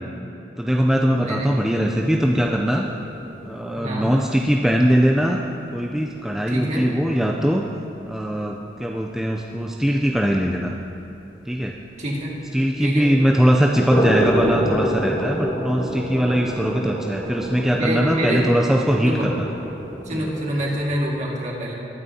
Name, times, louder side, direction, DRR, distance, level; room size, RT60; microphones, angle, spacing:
voice 1, 0.6-2.8 3.5-5.4 5.7-7.6 8.1-10.7 11.5-11.7 12.5-19.5 20.1-20.3, equal, ahead, -1 dB, 0.4 m, -21 dB
voice 2, 1.2-1.5 3.7-4.0 6.5-6.9 12.0-12.3 12.8-13.1 17.7-18.4 19.0-19.3 20.0-21.7, equal, 40° right, -3 dB, 1.9 m, -26 dB
sound 1, 1.5-7.4 7.6-7.8 8.2-8.3 8.6-8.7 9.1-9.2 12.0-12.1 13.5-20.9, equal, 25° left, 1.5 m, -28 dB
20.0 x 9.3 x 2.8 m, 2.8 s
head